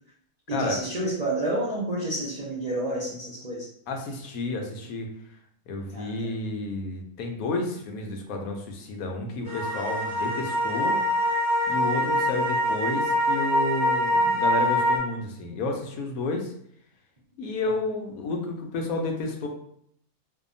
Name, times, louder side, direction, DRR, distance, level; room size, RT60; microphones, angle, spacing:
voice 1, 0.5-3.7 5.9-6.1 12.0-12.3, right 1 dB, 55° right, -8 dB, 0.4 m, -29 dB
voice 2, 3.9-5.1 5.7-11.0 11.7-16.5 17.4-19.5, left 2 dB, 80° left, 2 dB, 1.0 m, -31 dB
sound 1, 9.4-15.0, equal, 15° left, 0.6 m, -24 dB
2.7 x 2.2 x 2.5 m, 0.69 s
omnidirectional pair, 1.5 m